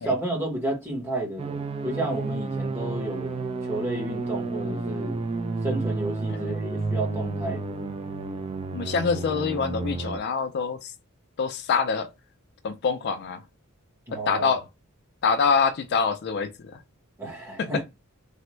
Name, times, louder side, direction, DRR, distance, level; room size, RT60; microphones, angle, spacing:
voice 1, 0.0-5.2 5.6-7.8 14.1-14.5 17.2-17.8, right 1 dB, 10° right, 1.0 m, -31 dB
sound 1, 1.4-10.2, right 3 dB, 25° right, 0.3 m, -31 dB
voice 2, 8.7-10.9 11.4-12.1 12.6-13.4 14.1-14.6 15.2-16.8 17.6-17.8, left 5 dB, 50° left, 0.4 m, -25 dB
3.3 x 2.0 x 3.0 m
head